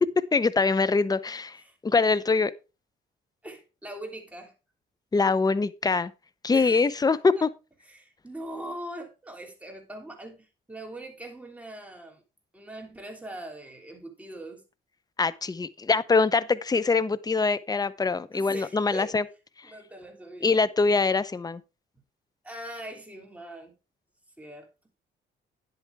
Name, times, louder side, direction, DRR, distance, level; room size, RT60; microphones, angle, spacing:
voice 1, 0.3-2.5 5.1-6.1 6.4-7.5 15.2-19.2 19.6-19.7 20.4-21.6, left 4 dB, 20° left, 0.7 m, -24 dB
voice 2, 3.4-4.5 6.5-7.5 7.8-12.2 12.5-14.6 18.3-19.2 19.6-20.7 22.4-23.7 24.4-24.7, right 1 dB, 5° right, 3.2 m, -41 dB
10.5 x 8.1 x 3.5 m
cardioid pair, 90°, 20 cm